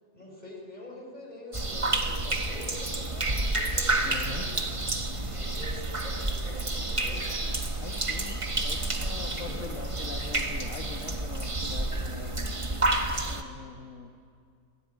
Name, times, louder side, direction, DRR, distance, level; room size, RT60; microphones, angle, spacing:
voice 1, 0.1-4.7 5.3-7.6 9.4-9.7, left 1 dB, 25° left, 0 dB, 5.3 m, -45 dB
sound 1, 1.5-13.4, right 2 dB, 20° right, 1.2 m, -30 dB
voice 2, 4.0-4.4 7.7-12.3 13.2-14.1, left 5 dB, 55° left, 4 dB, 1.7 m, -42 dB
25.5 x 18.0 x 9.4 m, 2.3 s
omnidirectional pair, 1.7 m